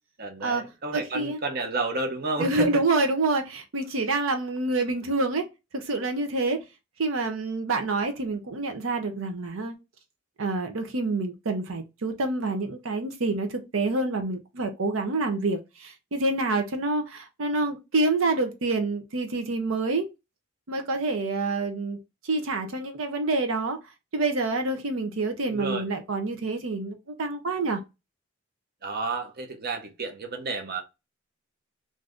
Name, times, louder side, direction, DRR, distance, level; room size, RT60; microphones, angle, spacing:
voice 1, 0.2-2.7 25.5-25.8 28.8-30.8, right 3 dB, 50° right, 0.7 m, -31 dB
voice 2, 0.9-1.4 2.4-5.5 5.7-6.6 7.0-9.8 10.4-20.1 20.7-22.0 22.2-23.8 24.1-27.8, right 2 dB, 85° right, 0.7 m, -27 dB
2.6 x 2.5 x 3.3 m
head